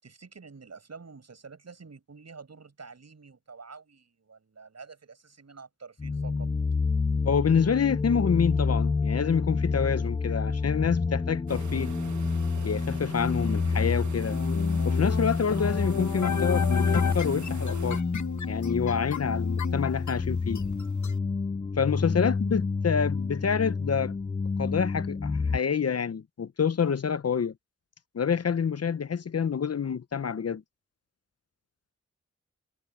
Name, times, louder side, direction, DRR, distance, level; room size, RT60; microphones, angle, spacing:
voice 1, 0.0-6.5, right 4 dB, 60° right, 6.6 m, -48 dB
sound 1, 6.0-25.6, left 4 dB, 20° left, 0.4 m, -28 dB
voice 2, 7.2-11.9 12.6-14.4 14.8-18.0 18.5-20.6 21.8-24.1 24.6-27.5 28.1-30.6, left 6 dB, 55° left, 0.8 m, -27 dB
sound 2, 11.5-18.0, right 7 dB, 75° right, 1.4 m, -43 dB
sound 3, 14.3-21.1, left 7 dB, 80° left, 1.2 m, -34 dB
cardioid pair, 55°, 29 cm